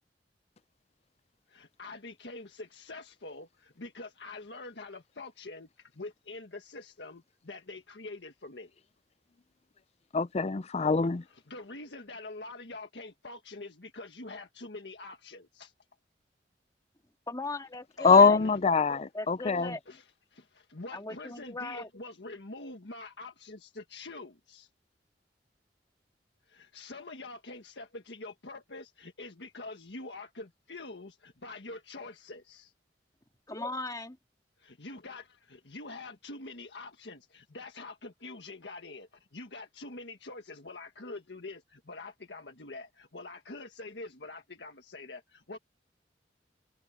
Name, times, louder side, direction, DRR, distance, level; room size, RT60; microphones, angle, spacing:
voice 1, 1.5-8.7 11.2-15.7 18.0-18.6 18.9-19.0 19.9-20.1 20.7-24.7 26.5-32.7 34.6-45.6, left 2 dB, 80° left, 1.6 m, -45 dB
voice 2, 10.1-11.2 18.0-19.7, left 5 dB, 40° left, 0.5 m, -23 dB
voice 3, 17.3-18.4 19.1-19.8 20.9-21.9 33.5-34.2, left 2 dB, 20° left, 2.1 m, -38 dB
head